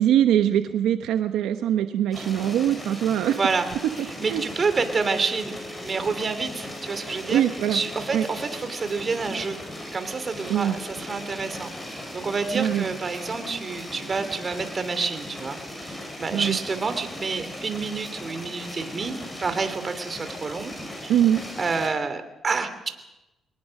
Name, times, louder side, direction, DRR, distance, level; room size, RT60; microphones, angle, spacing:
voice 1, 0.0-3.4 4.3-4.4 7.3-7.8 8.1-8.3 10.5-10.8 12.5-12.9 16.3-16.6 21.1-21.4, right 10 dB, 85° right, 9 dB, 0.9 m, -22 dB
sound 1, 2.1-21.9, left 1 dB, 15° left, 7.3 m, -38 dB
voice 2, 3.3-3.7 4.0-7.4 7.7-9.6 9.9-20.7 21.0-21.2 21.6-22.9, right 4 dB, 35° right, 9 dB, 2.8 m, -28 dB
Wind instrument woodwind instrument, 4.4-11.6, left 1 dB, 40° left, 7.9 m, -45 dB
23.0 x 19.0 x 6.5 m, 0.99 s
cardioid pair, 90°, 0 cm